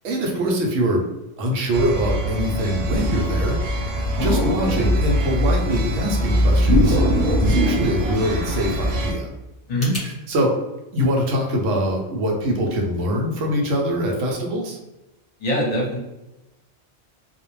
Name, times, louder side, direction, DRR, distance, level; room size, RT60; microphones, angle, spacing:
voice 1, 0.0-1.1 1.4-3.6 3.9-7.0 7.4-9.3 10.0-10.5 10.9-14.8, equal, 85° right, 1 dB, 1.0 m, -23 dB
sound 1, 1.7-9.1, equal, 60° right, 0.6 m, -23 dB
sound 2, 4.2-5.6 6.7-9.1, equal, 20° right, 0.7 m, -22 dB
sound 3, 9.7-10.1, left 1 dB, 15° left, 1.1 m, -40 dB
voice 2, 15.4-16.0, equal, 40° left, -3 dB, 0.7 m, -22 dB
2.4 x 2.1 x 3.0 m, 0.98 s
omnidirectional pair, 1.3 m